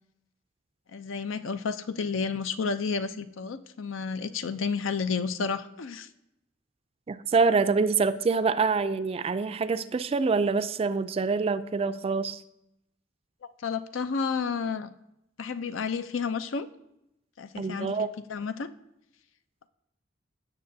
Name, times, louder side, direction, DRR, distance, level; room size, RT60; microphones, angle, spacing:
voice 1, 0.9-6.1 13.6-14.9 15.4-16.7 17.4-18.7, left 5 dB, 80° left, 11 dB, 0.5 m, -31 dB
voice 2, 7.1-12.4 17.6-18.1, right 4 dB, 30° right, 13 dB, 0.3 m, -26 dB
17.0 x 6.5 x 2.7 m, 0.83 s
head